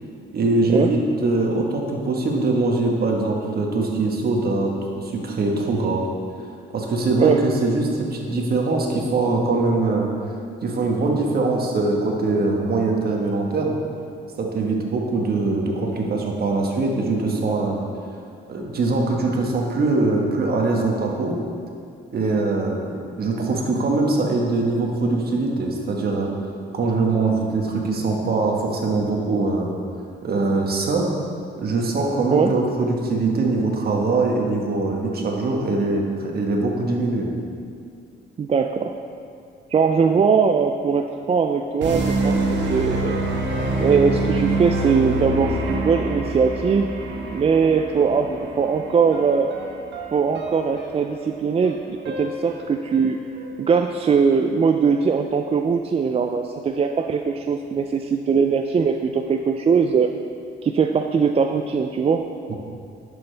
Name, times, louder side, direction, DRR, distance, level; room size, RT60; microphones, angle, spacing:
voice 1, 0.3-6.0 6.7-10.1 10.6-13.8 14.4-17.8 18.5-21.4 22.1-26.3 26.7-29.8 30.2-31.1 31.6-37.3 62.5-62.6, right 3 dB, 50° right, 0 dB, 1.4 m, -22 dB
voice 2, 38.4-39.0 39.7-43.2 43.8-46.9 47.3-49.5 50.1-53.2 53.6-60.1 60.6-62.3, right 5 dB, 30° right, 5 dB, 0.4 m, -20 dB
sound 1, 41.8-53.5, right 2 dB, 65° right, 1.2 m, -27 dB
11.0 x 6.9 x 3.4 m, 2.4 s
cardioid pair, 90°, 20 cm